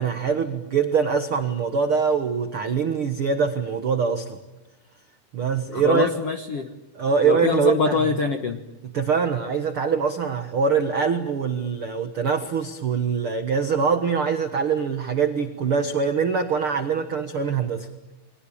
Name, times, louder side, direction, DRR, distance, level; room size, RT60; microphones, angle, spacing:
voice 1, 0.0-4.4 5.3-6.1 6.9-8.1 8.8-17.9, right 6 dB, 75° right, 8 dB, 1.2 m, -23 dB
voice 2, 5.7-6.7 7.2-8.6, left 5 dB, 70° left, 7 dB, 1.4 m, -24 dB
30.0 x 22.5 x 8.7 m, 1.0 s
omnidirectional pair, 4.7 m